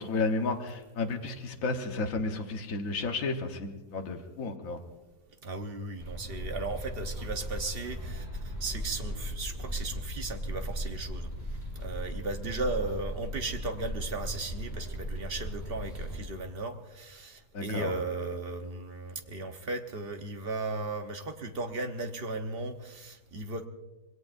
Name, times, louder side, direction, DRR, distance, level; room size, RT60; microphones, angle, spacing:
voice 1, 0.0-4.8 17.5-17.9, left 3 dB, 60° left, 4 dB, 1.6 m, -32 dB
voice 2, 5.4-11.3 11.7-23.7, right 3 dB, 40° right, 5 dB, 1.2 m, -36 dB
Elephant & Castle - Short bus journey, 6.0-16.2, equal, 15° left, 5.7 m, -37 dB
26.0 x 21.0 x 2.6 m, 1.1 s
omnidirectional pair, 1.6 m